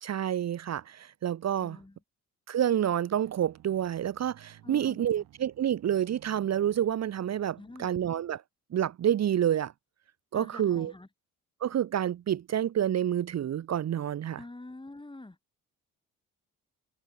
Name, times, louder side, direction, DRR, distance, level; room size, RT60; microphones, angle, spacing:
voice 1, 0.0-1.8 2.5-8.4 8.7-9.7 10.3-10.9 11.6-14.4, right 10 dB, 50° right, 0.9 m, -28 dB
voice 2, 1.6-2.0 4.6-5.2 7.6-7.9 10.3-11.1 14.4-15.4, left 2 dB, 15° left, 4.2 m, -46 dB
sound 1, 3.2-8.4, right 14 dB, 80° right, 7.5 m, -57 dB
supercardioid pair, 70°, 33 cm